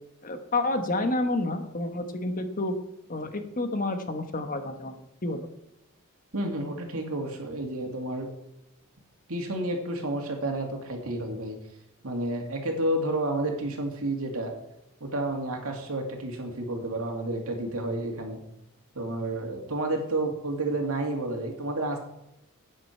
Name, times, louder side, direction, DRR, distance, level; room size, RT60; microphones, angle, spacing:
voice 1, 0.2-2.7 3.1-4.9 5.2-5.5, left 2 dB, 40° left, 7 dB, 1.2 m, -29 dB
voice 2, 6.3-8.3 9.3-11.6 12.0-14.5 15.0-18.4 18.9-22.0, right 1 dB, 80° right, 2 dB, 2.4 m, -30 dB
11.0 x 9.1 x 4.5 m, 0.85 s
head